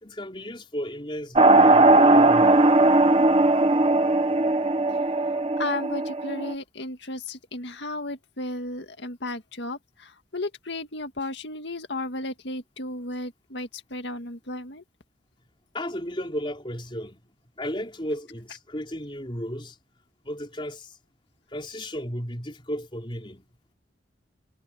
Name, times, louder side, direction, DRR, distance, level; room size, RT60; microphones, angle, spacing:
voice 1, 0.0-2.7 15.7-19.8 20.2-21.0 21.5-23.5, equal, 25° left, 4.8 m, -34 dB
sound 1, 1.4-6.5, right 2 dB, 30° right, 1.0 m, -18 dB
voice 2, 5.6-14.8, left 2 dB, 70° left, 2.0 m, -34 dB
head